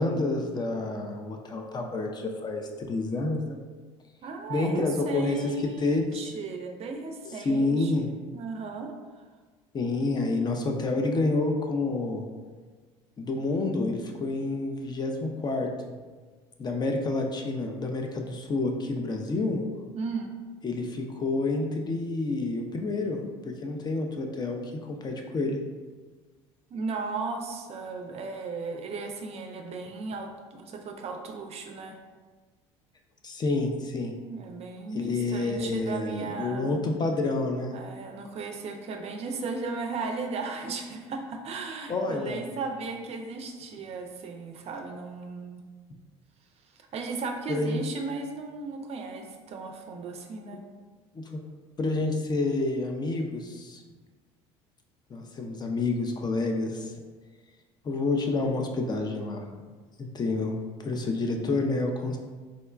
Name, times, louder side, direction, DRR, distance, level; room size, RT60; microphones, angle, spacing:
voice 1, 0.0-3.6 4.5-6.2 7.2-8.1 9.7-12.3 13.2-15.7 16.6-19.6 20.6-24.6 24.9-25.6 33.2-34.1 34.9-37.7 41.9-42.5 47.5-47.8 51.1-51.4 51.8-53.8 55.1-56.9 57.8-59.4 60.0-62.2, left 2 dB, 30° left, 3 dB, 0.4 m, -29 dB
voice 2, 4.2-9.2 19.9-20.4 26.7-32.0 34.3-36.8 37.7-45.6 46.7-50.6, right 4 dB, 45° right, 4 dB, 0.4 m, -36 dB
3.7 x 2.1 x 2.3 m, 1.4 s
hypercardioid pair, 70°, 15 cm